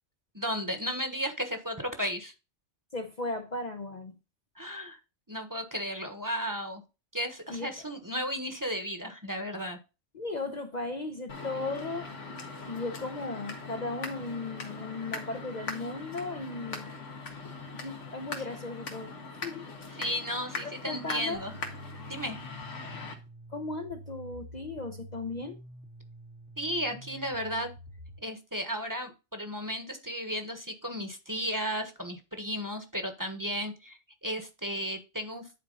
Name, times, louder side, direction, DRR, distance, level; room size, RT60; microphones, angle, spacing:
voice 1, 0.3-2.3 4.6-5.0 5.3-6.8 7.1-9.8 18.4-18.5 20.0-21.5 22.1-22.4 26.6-27.7 28.2-35.4, equal, 15° right, 6 dB, 1.2 m, -34 dB
voice 2, 2.9-4.1 7.5-7.9 10.1-12.1 12.6-16.9 17.8-19.1 19.4-19.7 20.6-21.4 23.5-25.6, left 2 dB, 40° left, 5 dB, 0.9 m, -36 dB
sound 1, 11.3-23.1, left 3 dB, 90° left, 2.0 m, -41 dB
sound 2, 21.3-28.2, right 1 dB, 75° right, 2.4 m, -48 dB
10.5 x 4.5 x 4.0 m, 0.29 s
omnidirectional pair, 1.2 m